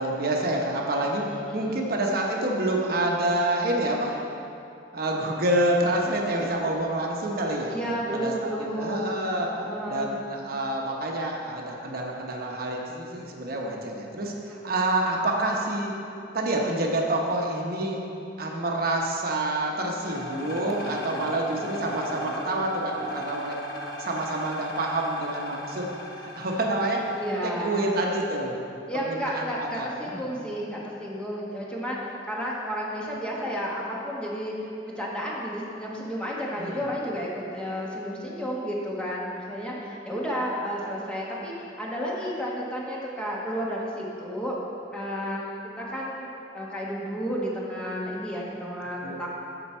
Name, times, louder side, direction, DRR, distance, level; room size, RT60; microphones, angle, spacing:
voice 1, 0.0-4.2 4.9-7.8 8.2-9.5 9.9-15.9 16.3-18.0 18.4-23.6 24.0-25.9 26.2-27.0 27.4-28.5 29.1-30.2 36.6-36.8 49.0-49.2, right 1 dB, 55° right, -1 dB, 0.9 m, -27 dB
voice 2, 1.3-1.8 7.7-9.1 9.5-10.2 14.5-15.0 27.1-27.8 28.9-34.6 34.8-44.5 44.9-46.3 46.5-49.3, equal, 5° left, -5 dB, 1.2 m, -32 dB
sound 1, 20.0-27.6, left 1 dB, 60° left, 1.2 m, -37 dB
13.0 x 4.5 x 4.4 m, 2.7 s
head